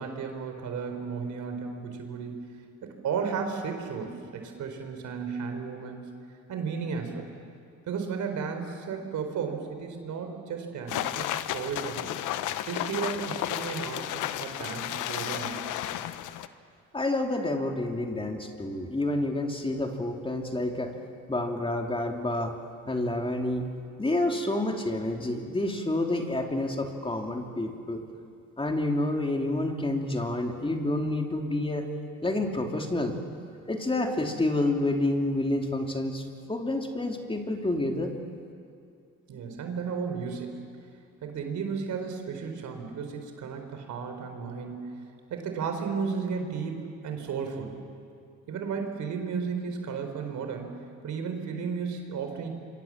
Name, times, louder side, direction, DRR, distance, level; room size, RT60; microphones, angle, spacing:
voice 1, 0.0-2.4 2.8-6.1 6.5-7.3 7.9-12.1 12.7-15.8 39.3-40.6 41.2-45.0 45.3-47.8 48.5-50.8 51.0-52.5, right 5 dB, 75° right, 5 dB, 4.0 m, -34 dB
sound 1, 10.9-16.5, left 12 dB, 90° left, 0.9 m, -33 dB
voice 2, 16.9-20.9 21.3-22.6 22.9-23.7 24.0-28.0 28.6-31.9 32.2-33.1 33.7-36.2 36.5-38.1, left 1 dB, 20° left, 2 dB, 3.0 m, -29 dB
27.0 x 24.5 x 7.4 m, 2.5 s
cardioid pair, 90°, 30 cm